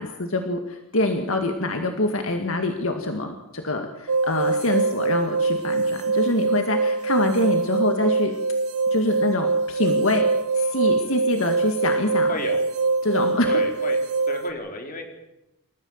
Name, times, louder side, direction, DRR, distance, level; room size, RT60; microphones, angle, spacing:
voice 1, 0.0-8.3 8.9-10.3 10.6-12.3 13.0-13.5, left 2 dB, 70° left, 5 dB, 2.0 m, -25 dB
sound 1, 4.1-14.5, right 3 dB, 90° right, 1.8 m, -23 dB
voice 2, 12.3-12.6 13.5-14.0 14.3-15.0, left 2 dB, 40° left, 3 dB, 4.3 m, -32 dB
27.5 x 14.5 x 7.3 m, 0.92 s
head